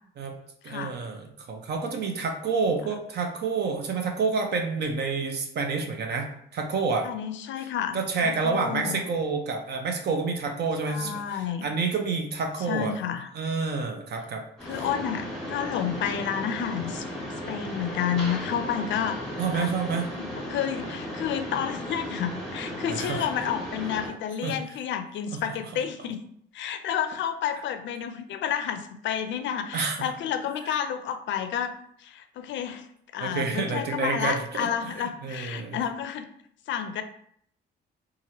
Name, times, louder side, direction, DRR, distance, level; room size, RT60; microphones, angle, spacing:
voice 1, 0.6-7.1 7.6-7.7 7.9-12.9 13.3-14.4 14.7-14.9 19.4-20.1 22.9-23.2 24.4-24.6 25.3-25.4 25.7-25.8 29.7-30.1 33.2-35.8, right 4 dB, 55° right, 2 dB, 0.6 m, -29 dB
voice 2, 7.0-9.0 10.9-11.7 12.7-13.3 14.7-17.1 17.5-19.2 19.5-19.7 20.2-26.2 26.5-31.7 32.0-32.9 33.1-36.3 36.7-37.0, left 9 dB, 70° left, 9 dB, 0.4 m, -30 dB
Mechanisms, 14.6-24.1, equal, 5° left, 1.3 m, -35 dB
2.9 x 2.4 x 2.8 m, 0.67 s
cardioid pair, 90°, 20 cm